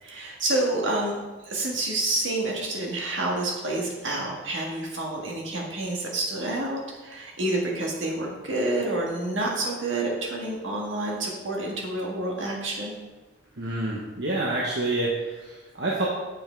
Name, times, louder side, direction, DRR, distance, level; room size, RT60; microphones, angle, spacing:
voice 1, 0.0-1.2 1.4-13.0, right 2 dB, 80° right, -1 dB, 1.8 m, -28 dB
voice 2, 13.6-16.1, right 2 dB, 60° right, -3 dB, 1.0 m, -28 dB
7.3 x 5.7 x 4.4 m, 1.2 s
head